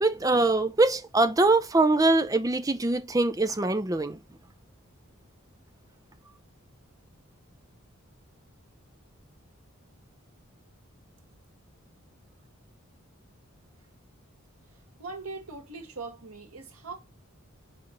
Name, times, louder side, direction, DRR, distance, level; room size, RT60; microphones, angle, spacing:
voice 1, 0.0-4.2, right 2 dB, 15° right, 0.5 m, -23 dB
voice 2, 14.7-16.9, right 3 dB, 90° right, 2.0 m, -41 dB
5.2 x 5.2 x 5.4 m
head